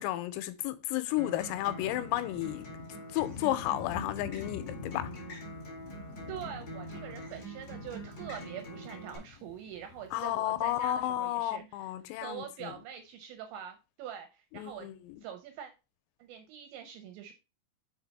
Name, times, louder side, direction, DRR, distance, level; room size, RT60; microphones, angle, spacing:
voice 1, 0.0-2.7 3.1-5.1 10.1-12.7 14.5-15.2, left 14 dB, 90° left, 3.4 m, -32 dB
Acoustic guitar, 1.2-9.2, right 1 dB, 35° left, 1.9 m, -45 dB
sound 1, 1.4-11.2, left 6 dB, 60° left, 2.4 m, -47 dB
voice 2, 6.3-11.9 12.2-14.9 15.2-15.7 16.2-17.3, right 9 dB, 80° right, 2.7 m, -44 dB
6.6 x 4.7 x 4.0 m
omnidirectional pair, 6.0 m